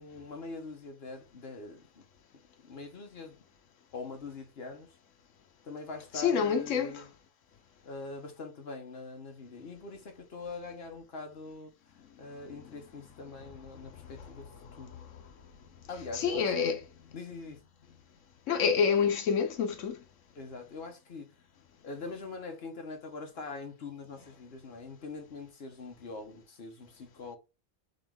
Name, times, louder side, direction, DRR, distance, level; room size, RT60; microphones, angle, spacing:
voice 1, 0.0-2.0 2.6-3.4 3.9-4.9 5.6-7.1 7.8-11.7 12.2-14.9 15.9-16.8 17.1-17.6 20.3-21.3 21.8-27.4, left 3 dB, 55° left, 1.2 m, -43 dB
voice 2, 6.1-7.0 14.7-14.8 16.1-16.8 18.5-20.0, left 6 dB, 80° left, 1.1 m, -27 dB
3.8 x 3.0 x 3.5 m
omnidirectional pair, 1.3 m